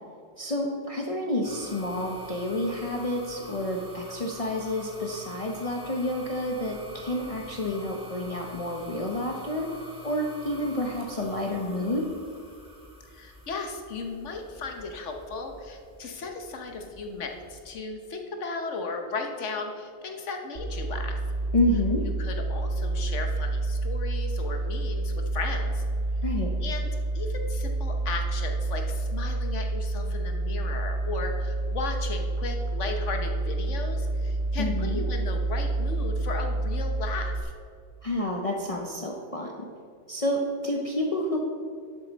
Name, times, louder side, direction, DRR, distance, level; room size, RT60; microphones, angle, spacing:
voice 1, 0.4-9.7 10.0-12.1 21.5-22.0 26.2-26.5 34.6-35.0 38.0-39.7 40.1-41.4, left 1 dB, 35° left, 0 dB, 0.7 m, -29 dB
sound 1, 1.4-17.7, right 1 dB, 5° right, 1.9 m, -46 dB
voice 2, 13.1-21.2 22.2-25.8 26.6-26.9 27.1-37.5, left 3 dB, 85° left, 4 dB, 1.4 m, -36 dB
sound 2, 20.5-37.4, right 2 dB, 45° right, 1.1 m, -29 dB
11.5 x 7.6 x 4.0 m, 2.3 s
omnidirectional pair, 1.2 m